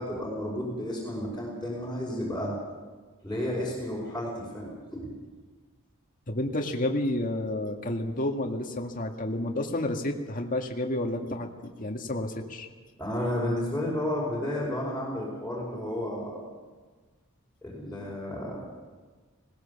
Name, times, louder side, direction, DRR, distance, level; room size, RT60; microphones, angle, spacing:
voice 1, 0.0-2.5 3.2-5.1 13.0-16.4 17.6-18.6, left 1 dB, 5° left, -8 dB, 5.1 m, -32 dB
voice 2, 6.3-12.7, left 1 dB, 40° left, 3 dB, 1.9 m, -30 dB
20.0 x 19.0 x 7.1 m, 1.4 s
head